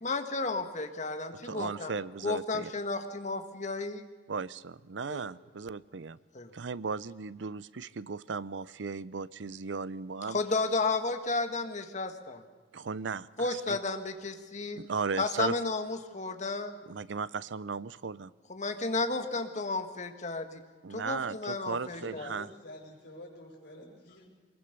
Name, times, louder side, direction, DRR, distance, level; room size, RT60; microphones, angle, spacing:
voice 1, 0.0-1.9 2.2-4.1 5.1-5.2 6.3-6.5 10.3-12.4 13.4-14.8 15.2-16.8 18.5-20.6 20.9-22.3, left 3 dB, 40° left, 7 dB, 1.7 m, -33 dB
voice 2, 1.4-2.7 4.3-6.2 6.5-10.4 12.7-13.8 14.8-15.6 16.9-18.3 20.8-22.5, right 5 dB, 85° right, 18 dB, 0.6 m, -36 dB
voice 3, 21.8-24.3, left 1 dB, 65° left, -3 dB, 6.3 m, -49 dB
23.5 x 21.5 x 6.7 m, 1.3 s
head